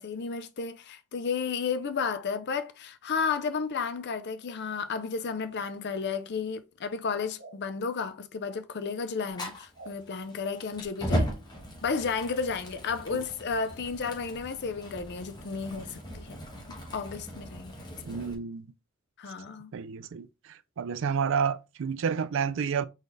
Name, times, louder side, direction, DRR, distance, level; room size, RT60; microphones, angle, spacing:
voice 1, 0.0-11.3 11.8-16.4 16.9-17.7 19.2-19.7, left 5 dB, 55° left, 0.5 m, -32 dB
sound 1, 7.4-7.6 9.7-10.0 10.8-10.9, right 3 dB, 45° right, 0.9 m, -47 dB
Fire, 9.3-18.3, equal, 20° left, 1.3 m, -37 dB
voice 2, 18.1-18.7 19.7-22.9, right 6 dB, 60° right, 0.4 m, -30 dB
4.0 x 3.9 x 3.2 m
head